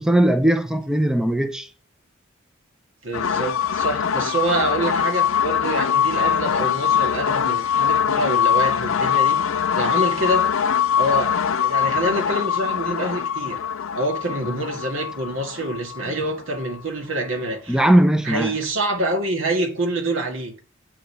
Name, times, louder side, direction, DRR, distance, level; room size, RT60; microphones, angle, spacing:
voice 1, 0.0-1.7 17.7-18.6, right 1 dB, 5° right, 0.5 m, -19 dB
voice 2, 3.0-9.4 9.7-10.5 11.0-11.3 11.6-13.6 13.9-17.8 18.2-20.6, right 1 dB, 70° right, 2.2 m, -26 dB
sound 1, 3.1-16.7, left 8 dB, 75° left, 0.5 m, -22 dB
8.6 x 5.2 x 7.0 m
head